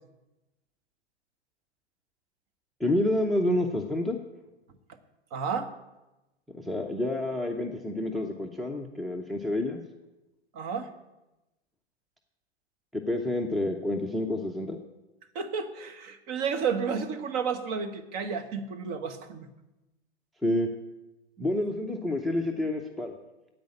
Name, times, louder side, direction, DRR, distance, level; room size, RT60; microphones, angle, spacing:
voice 1, 2.8-4.2 6.5-9.8 12.9-14.8 20.4-20.7 21.4-23.1, left 1 dB, ahead, 4 dB, 0.7 m, -28 dB
voice 2, 5.3-5.7 10.5-10.9 15.3-19.5, right 6 dB, 35° right, 7 dB, 1.4 m, -31 dB
10.5 x 8.8 x 8.5 m, 1.0 s
figure-of-eight pair, 105°, 33 cm